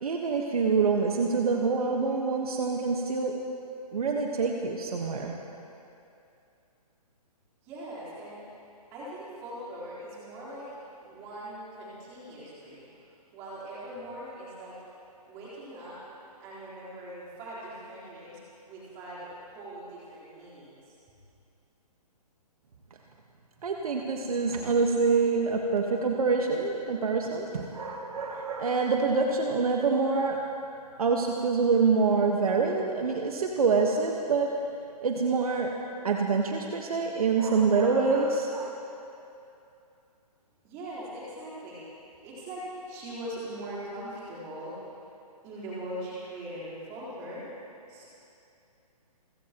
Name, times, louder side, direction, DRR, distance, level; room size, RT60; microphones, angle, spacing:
voice 1, 0.0-3.5 3.9-5.3 23.6-30.4 31.0-34.7 35.0-38.7, right 4 dB, 65° right, 1 dB, 1.4 m, -26 dB
voice 2, 7.6-8.4 8.9-10.7 11.0-13.0 13.3-14.8 15.3-16.0 16.4-18.4 18.7-21.0 40.6-44.7 45.4-47.4 47.9-48.1, right 1 dB, 15° right, -9 dB, 4.0 m, -41 dB
30.0 x 15.5 x 3.0 m, 2.7 s
hypercardioid pair, 180°, 20 cm